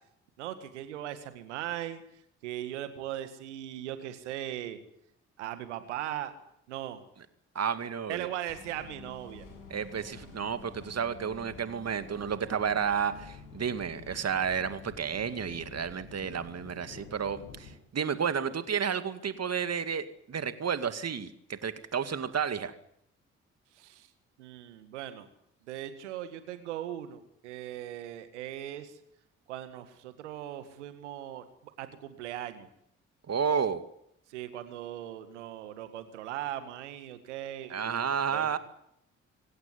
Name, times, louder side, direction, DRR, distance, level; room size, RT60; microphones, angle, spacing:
voice 1, 0.4-4.8 5.4-6.3 6.7-7.0 8.1-9.5 23.7-24.1 24.4-25.3 25.6-29.0 29.5-32.7 34.3-38.6, right 12 dB, 85° right, 10 dB, 1.9 m, -39 dB
voice 2, 7.5-8.3 9.7-22.7 33.3-33.8 37.7-38.6, right 7 dB, 45° right, 10 dB, 2.3 m, -31 dB
sound 1, 8.5-17.8, left 4 dB, 80° left, 6.4 m, -49 dB
25.0 x 17.0 x 9.8 m, 0.77 s
hypercardioid pair, 45°, 34 cm